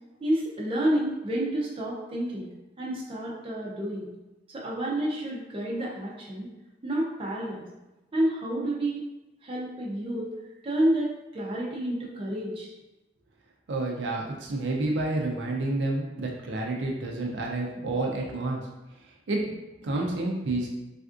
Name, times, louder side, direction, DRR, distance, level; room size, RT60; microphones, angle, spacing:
voice 1, 0.2-2.5 2.8-4.1 4.5-6.5 6.8-7.7 8.1-9.0 9.4-10.3 10.6-12.7, right 1 dB, 30° right, -4 dB, 0.5 m, -29 dB
voice 2, 13.7-18.6 19.3-19.6 19.8-20.7, right 2 dB, 85° right, -1 dB, 0.5 m, -29 dB
3.4 x 2.4 x 2.4 m, 1.0 s
head